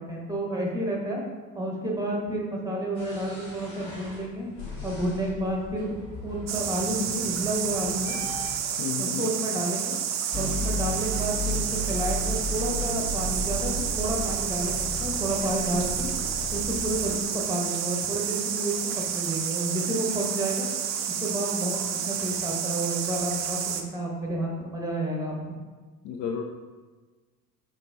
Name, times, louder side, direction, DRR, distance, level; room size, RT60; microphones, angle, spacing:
voice 1, 0.1-1.2 1.5-4.5 4.8-5.9 6.2-8.1 9.0-9.9 10.3-16.1 16.5-18.7 19.1-20.7 21.2-25.3, right 1 dB, 10° right, -2 dB, 1.2 m, -30 dB
sound 1, 3.0-8.6, left 1 dB, 65° left, 1.4 m, -41 dB
sound 2, 6.5-23.8, right 8 dB, 40° right, 0.5 m, -30 dB
voice 2, 8.8-9.3 26.0-26.4, left 7 dB, 45° left, 3 dB, 0.5 m, -32 dB
sound 3, 10.3-17.2, left 1 dB, 15° left, 0.8 m, -33 dB
5.1 x 3.8 x 2.6 m, 1.3 s
figure-of-eight pair, 65°, 44 cm